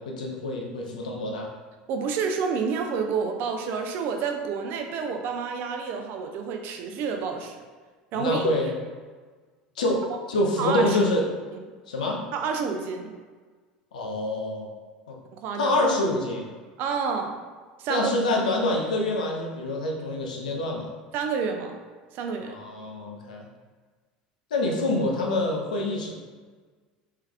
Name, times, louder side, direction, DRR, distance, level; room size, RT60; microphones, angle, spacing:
voice 1, 0.0-1.5 8.1-8.8 9.8-11.2 11.9-12.2 13.9-14.7 15.1-15.2 15.6-16.5 17.9-20.9 22.5-23.5 24.5-26.1, left 1 dB, 80° left, 1 dB, 0.7 m, -26 dB
voice 2, 1.9-7.6 8.1-8.5 10.6-11.0 12.3-13.1 15.3-15.8 16.8-17.4 17.8-18.1 21.1-21.8 22.1-22.5, right 5 dB, 55° right, 4 dB, 0.6 m, -29 dB
3.4 x 3.3 x 3.4 m, 1.4 s
hypercardioid pair, 75°, 4 cm